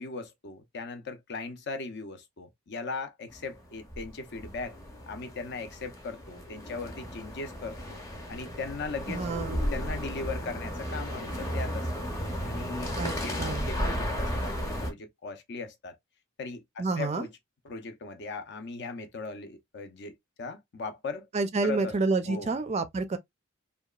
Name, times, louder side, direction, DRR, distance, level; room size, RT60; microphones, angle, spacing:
voice 1, 0.0-4.8 5.1-8.0 8.3-9.3 9.7-12.1 12.5-16.0 16.4-17.3 17.6-21.3 21.6-22.0 22.2-22.6, left 3 dB, 55° left, 0.6 m, -38 dB
sound 1, 3.3-14.9, equal, 15° left, 0.8 m, -34 dB
voice 2, 9.1-9.6 13.0-13.1 13.4-13.7 16.8-17.3 21.3-23.2, right 3 dB, 30° right, 0.4 m, -29 dB
2.8 x 2.2 x 2.2 m
head